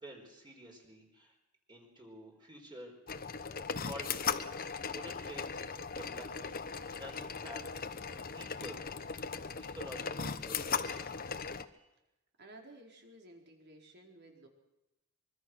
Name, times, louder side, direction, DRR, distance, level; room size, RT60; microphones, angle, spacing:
voice 1, 0.0-1.3 1.7-2.9 3.8-5.6 5.9-8.8 9.3-11.1, equal, 20° right, 0 dB, 4.6 m, -50 dB
sound 1, 3.1-11.6, left 6 dB, 45° left, 1.0 m, -38 dB
voice 2, 12.4-14.5, right 1 dB, 50° right, 2 dB, 4.5 m, -55 dB
24.5 x 23.5 x 6.3 m, 0.93 s
head